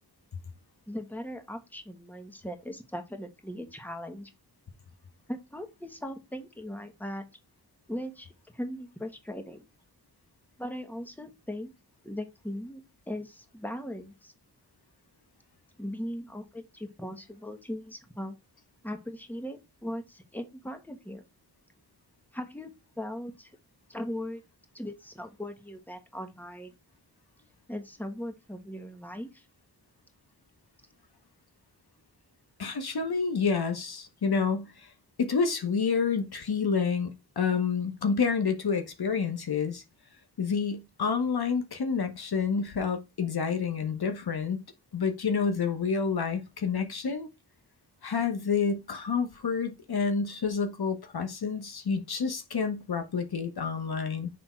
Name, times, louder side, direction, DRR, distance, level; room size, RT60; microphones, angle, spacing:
voice 1, 0.9-4.3 5.3-7.2 7.9-9.7 10.6-11.7 12.0-12.8 13.1-14.3 15.8-18.4 18.8-21.2 22.3-23.5 23.9-24.4 24.7-26.7 27.7-29.4, equal, 5° left, 1.2 m, -39 dB
voice 2, 32.6-34.9 35.2-39.8 40.4-44.6 44.9-47.3 48.0-54.3, left 5 dB, 65° left, 1.1 m, -29 dB
6.3 x 3.5 x 4.4 m
wide cardioid pair, 80°, 41 cm